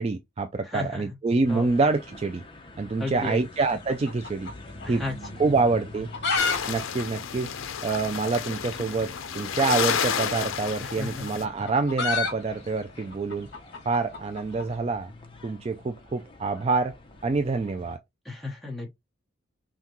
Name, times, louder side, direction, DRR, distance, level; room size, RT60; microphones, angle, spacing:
voice 1, 0.0-2.4 2.8-4.5 4.9-5.0 5.4-6.1 6.7-7.5 7.8-13.5 13.9-15.1 15.4-17.0 17.2-18.0, right 3 dB, 30° right, 0.3 m, -26 dB
voice 2, 0.6-1.0 1.5-1.7 3.0-3.4 4.8-5.2 10.8-11.3 18.2-18.9, left 2 dB, ahead, 1.1 m, -34 dB
sound 1, 1.4-18.0, left 2 dB, 25° left, 0.8 m, -47 dB
sound 2, 3.7-5.0 5.2-5.3 5.9-6.6 6.8-6.9 7.2-7.3 7.9-8.0 9.2-9.3 10.5-14.7, left 4 dB, 55° left, 1.6 m, -30 dB
sound 3, 6.4-11.4, left 7 dB, 75° left, 0.5 m, -31 dB
5.7 x 2.3 x 3.0 m
head